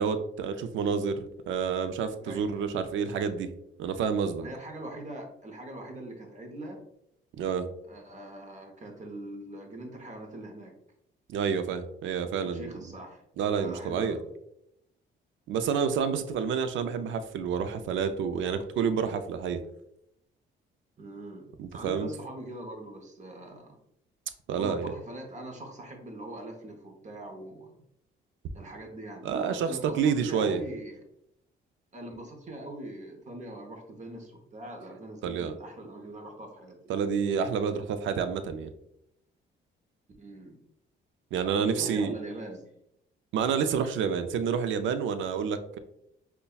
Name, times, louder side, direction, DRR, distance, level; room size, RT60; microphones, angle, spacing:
voice 1, 0.0-3.5 3.8-4.5 7.4-7.7 11.3-12.7 13.4-14.2 15.5-19.6 21.6-22.1 24.5-24.9 29.2-30.6 35.2-35.5 36.9-38.7 41.3-42.1 43.3-45.8, right 6 dB, 75° right, 10 dB, 0.4 m, -29 dB
voice 2, 2.2-2.7 4.4-6.8 7.9-10.7 12.4-13.2 13.5-14.3 21.0-23.8 24.6-27.7 28.5-31.0 31.9-36.8 40.2-40.6 41.6-42.6, right 1 dB, 35° right, 3 dB, 0.8 m, -42 dB
5.3 x 2.2 x 2.3 m, 0.78 s
cardioid pair, 90°, 20 cm